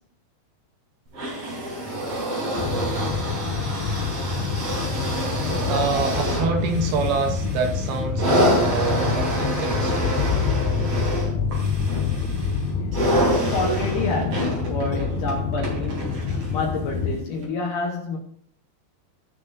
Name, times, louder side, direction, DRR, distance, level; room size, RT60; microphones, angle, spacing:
sound 1, 1.1-16.6 17.4-17.5, right 1 dB, 35° right, 3.8 m, -27 dB
sound 2, 2.6-17.2, left 5 dB, 85° left, 3.8 m, -27 dB
voice 1, 5.0-10.3, right 4 dB, 70° right, 2.9 m, -27 dB
voice 2, 13.2-18.2, left 3 dB, 65° left, 2.1 m, -28 dB
17.5 x 6.6 x 2.7 m
omnidirectional pair, 4.9 m